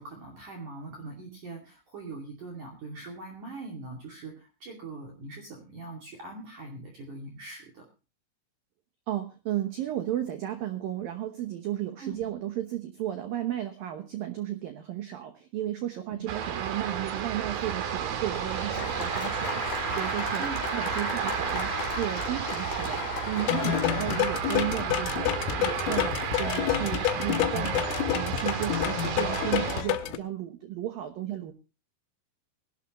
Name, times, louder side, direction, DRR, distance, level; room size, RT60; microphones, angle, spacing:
voice 1, 0.0-7.8 12.0-12.3 16.1-16.6 20.4-20.6, right 3 dB, 45° right, 0 dB, 3.3 m, -42 dB
voice 2, 9.1-31.5, right 12 dB, 85° right, 7 dB, 2.0 m, -34 dB
sound 1, 16.3-29.8, right 9 dB, 65° right, 2.6 m, -32 dB
Applause, 17.9-24.8, left 5 dB, 60° left, 5.0 m, -37 dB
sound 2, 23.5-30.2, left 12 dB, 85° left, 3.6 m, -28 dB
20.5 x 12.0 x 3.0 m, 0.32 s
omnidirectional pair, 5.8 m